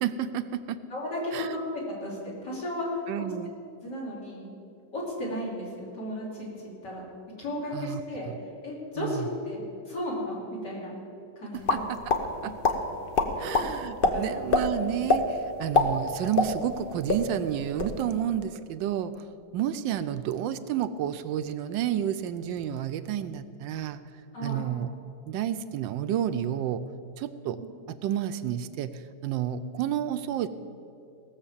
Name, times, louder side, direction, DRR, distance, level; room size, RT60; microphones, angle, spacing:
voice 1, 0.0-0.8 1.3-1.6 3.1-3.5 7.7-8.0 9.0-9.3 11.5-12.0 12.4-12.5 13.4-19.2 19.5-24.0 24.4-24.9 25.3-26.8 27.2-27.6 27.9-30.5, right 10 dB, 80° right, 11 dB, 1.2 m, -30 dB
voice 2, 0.9-1.6 2.0-3.0 3.8-4.5 4.9-7.1 7.4-8.3 8.6-10.9 11.4-11.8 13.4-13.6 14.1-14.3 24.3-24.7 27.6-27.7, left 1 dB, 60° left, -4 dB, 3.9 m, -34 dB
sound 1, 11.7-12.2 12.6-12.8 13.2-13.7 14.0-14.1 14.5-14.6 15.1-15.2 15.6-16.8 17.1-17.2 17.6-17.9, left 4 dB, 40° left, 0.8 m, -22 dB
17.5 x 7.2 x 7.1 m, 2.5 s
omnidirectional pair, 2.1 m